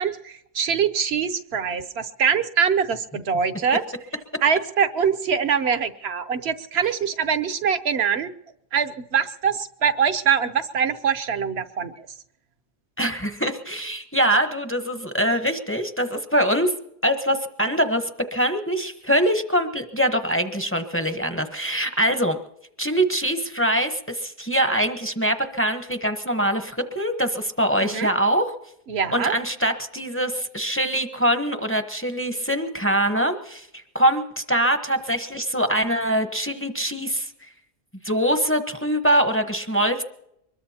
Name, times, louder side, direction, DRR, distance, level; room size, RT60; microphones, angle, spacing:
voice 1, 0.0-3.8 4.4-8.3 8.7-12.1 27.8-28.1 28.9-29.3, right 7 dB, 50° right, 10 dB, 0.9 m, -23 dB
voice 2, 13.0-16.7 17.0-22.4 22.8-28.5 29.1-37.5 38.0-40.0, right 1 dB, 10° left, 7 dB, 0.7 m, -23 dB
23.5 x 21.5 x 2.9 m, 0.79 s
omnidirectional pair, 1.7 m